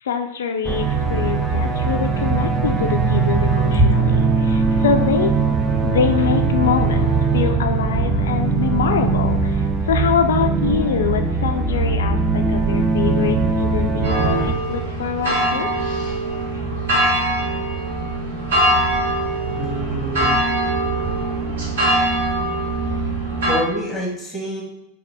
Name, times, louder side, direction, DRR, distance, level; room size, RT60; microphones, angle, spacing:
voice 1, 0.0-5.3 5.8-15.8 16.5-16.6, left 7 dB, 60° left, 5 dB, 0.3 m, -24 dB
sound 1, 0.6-14.5, right 4 dB, 20° right, 0.4 m, -20 dB
sound 2, 14.0-23.5, right 1 dB, 60° right, 1.1 m, -22 dB
voice 2, 19.5-20.4 23.5-24.6, right 1 dB, 5° right, -3 dB, 1.0 m, -23 dB
3.8 x 2.3 x 3.4 m, 0.87 s
figure-of-eight pair, 90°, 0 cm